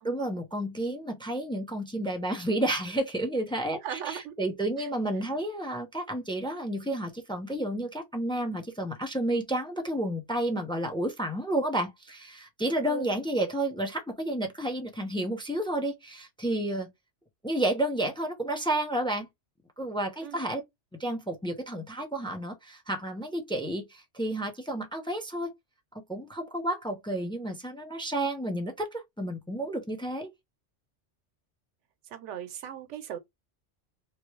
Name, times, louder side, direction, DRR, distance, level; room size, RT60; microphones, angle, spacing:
voice 1, 0.0-16.9 17.4-19.3 19.8-20.6 21.0-25.5 26.1-30.3, right 1 dB, 5° left, 0.6 m, -31 dB
voice 2, 3.8-4.3 4.8-4.9 12.8-13.2 20.2-20.5 32.1-33.2, right 10 dB, 90° right, 1.0 m, -38 dB
3.0 x 2.9 x 3.1 m
omnidirectional pair, 1.2 m